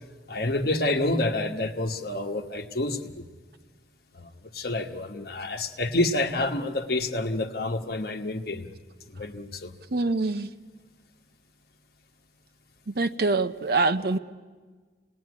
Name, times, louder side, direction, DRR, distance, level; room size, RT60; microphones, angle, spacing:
voice 1, 0.3-3.2 4.1-8.7 9.1-9.7, left 2 dB, 55° left, 1.3 m, -28 dB
voice 2, 9.9-10.5 12.9-14.2, right 3 dB, 55° right, 0.8 m, -25 dB
26.5 x 19.0 x 9.6 m
head